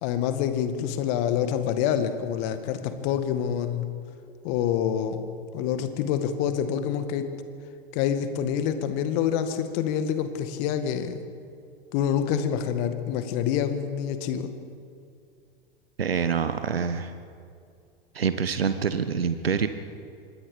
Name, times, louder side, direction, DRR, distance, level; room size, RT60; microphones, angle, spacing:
voice 1, 0.0-3.9 4.4-5.3 5.5-7.3 7.9-11.2 11.9-14.5, left 9 dB, 45° left, 9 dB, 1.9 m, -27 dB
voice 2, 16.0-17.1 18.1-19.7, right 6 dB, 80° right, 10 dB, 1.1 m, -26 dB
26.0 x 20.5 x 5.1 m, 2.4 s
figure-of-eight pair, 95°, 29 cm